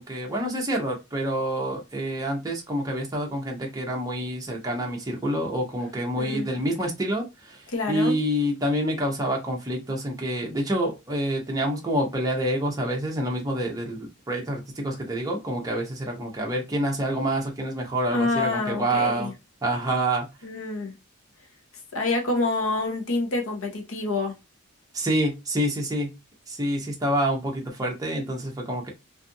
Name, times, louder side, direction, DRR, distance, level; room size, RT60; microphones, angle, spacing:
voice 1, 0.0-19.3 19.6-20.3 24.9-26.1 26.5-28.9, right 1 dB, 15° right, 0.6 m, -27 dB
voice 2, 6.2-6.5 7.7-8.2 18.1-19.3 20.4-20.9 21.9-24.3, left 2 dB, 65° left, 0.8 m, -27 dB
2.6 x 2.4 x 2.5 m
head